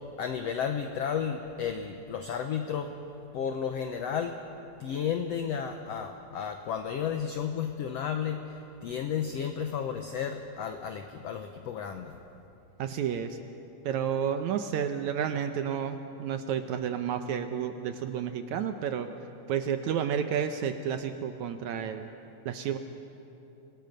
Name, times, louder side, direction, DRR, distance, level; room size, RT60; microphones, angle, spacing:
voice 1, 0.2-2.9 3.3-4.4 4.8-12.1, left 7 dB, 80° left, 6 dB, 1.4 m, -33 dB
voice 2, 12.8-13.4 13.8-19.1 19.5-22.1 22.5-22.8, right 8 dB, 75° right, 8 dB, 1.8 m, -31 dB
27.0 x 18.5 x 6.6 m, 2.8 s
omnidirectional pair, 4.0 m